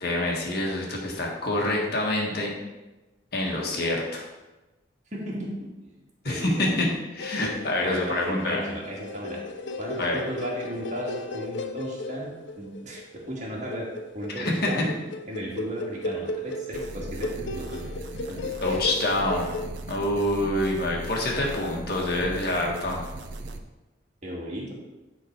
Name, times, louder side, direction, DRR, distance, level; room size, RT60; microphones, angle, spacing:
voice 1, 0.0-2.5 3.3-4.3 6.2-6.9 7.1-8.6 10.0-10.2 14.4-14.7 18.6-19.6 19.9-23.0, left 1 dB, 60° left, -2 dB, 1.6 m, -26 dB
voice 2, 5.1-5.7 6.2-6.8 7.8-9.4 9.8-13.9 14.1-15.0 15.3-17.8 18.3-18.8 24.2-24.7, equal, 40° right, -4 dB, 2.0 m, -35 dB
sound 1, 7.2-19.7, left 2 dB, 75° left, 0.6 m, -35 dB
sound 2, 16.7-23.6, right 2 dB, 70° right, 0.7 m, -38 dB
10.0 x 4.0 x 4.5 m, 1.1 s
head